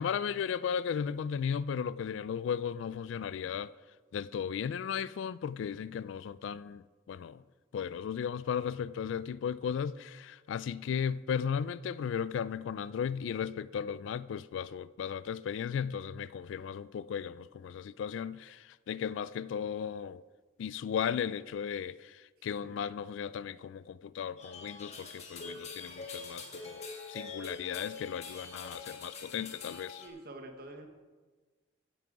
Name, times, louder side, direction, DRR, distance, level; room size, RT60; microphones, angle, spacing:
voice 1, 0.0-3.7 4.1-7.4 7.7-20.2 20.6-30.0, left 7 dB, 75° left, 0.3 m, -36 dB
voice 2, 22.4-22.8 30.0-30.9, right 2 dB, 50° right, 1.3 m, -48 dB
sound 1, 24.4-30.1, left 4 dB, 35° left, 1.5 m, -45 dB
16.0 x 6.1 x 4.8 m
head